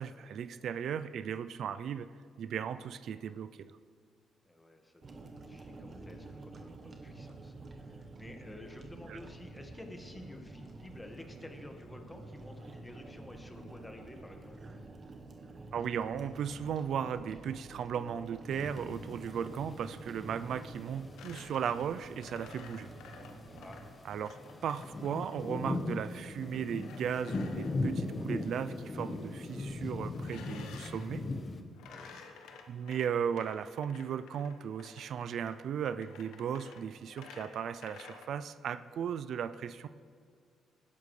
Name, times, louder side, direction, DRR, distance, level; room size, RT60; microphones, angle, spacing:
voice 1, 0.0-2.1 2.4-3.7 9.1-9.2 15.7-22.9 24.1-24.4 24.6-31.2 32.7-39.9, right 8 dB, 70° right, 13 dB, 0.4 m, -36 dB
voice 2, 4.4-14.6 23.6-23.8 31.8-32.2, left 1 dB, 15° left, 4 dB, 1.6 m, -51 dB
sound 1, 5.0-23.9, right 2 dB, 45° right, 1.2 m, -49 dB
sound 2, 18.5-31.6, left 2 dB, 35° left, 1.1 m, -40 dB
sound 3, 21.2-25.5 26.7-27.8 30.1-31.1 31.7-38.3, left 5 dB, 85° left, 1.1 m, -52 dB
19.5 x 10.5 x 3.3 m, 2.2 s
cardioid pair, 90°, 0 cm